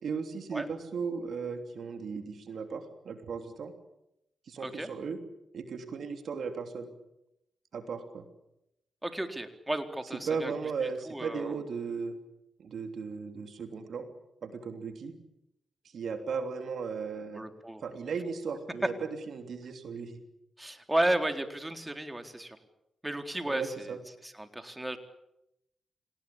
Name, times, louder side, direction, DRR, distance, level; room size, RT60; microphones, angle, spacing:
voice 1, 0.0-3.7 4.5-5.2 5.5-6.9 7.7-8.2 10.2-12.1 12.6-14.1 14.4-15.1 15.9-17.4 17.8-20.2 23.5-24.0, right 5 dB, 70° right, 7 dB, 3.2 m, -36 dB
voice 2, 9.0-10.5 11.1-11.5 17.3-17.8 20.6-22.6 23.0-23.9 24.2-25.0, right 1 dB, 15° right, 6 dB, 4.0 m, -33 dB
27.0 x 19.0 x 8.9 m, 0.85 s
supercardioid pair, 50°, 0 cm